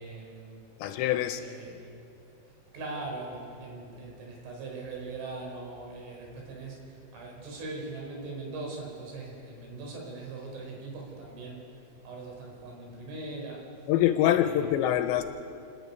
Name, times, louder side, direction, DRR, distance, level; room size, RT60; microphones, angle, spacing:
voice 1, 0.0-0.7 1.2-1.9 2.3-2.4 2.7-11.7 12.0-13.7 14.2-14.7, right 3 dB, 75° right, -1 dB, 6.9 m, -41 dB
voice 2, 0.8-1.4 13.9-15.2, left 12 dB, 80° left, 8 dB, 2.8 m, -24 dB
29.5 x 10.0 x 9.6 m, 2.6 s
omnidirectional pair, 5.5 m